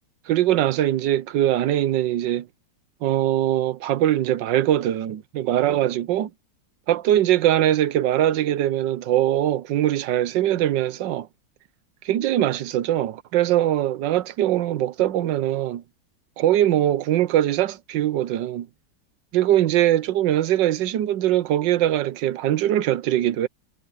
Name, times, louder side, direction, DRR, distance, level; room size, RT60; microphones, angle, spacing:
voice 1, 0.3-2.5 3.0-6.3 6.9-11.3 12.0-15.8 16.4-18.7 19.3-23.5, right 12 dB, 75° right, 1.5 m, -22 dB
omnidirectional pair, 2.0 m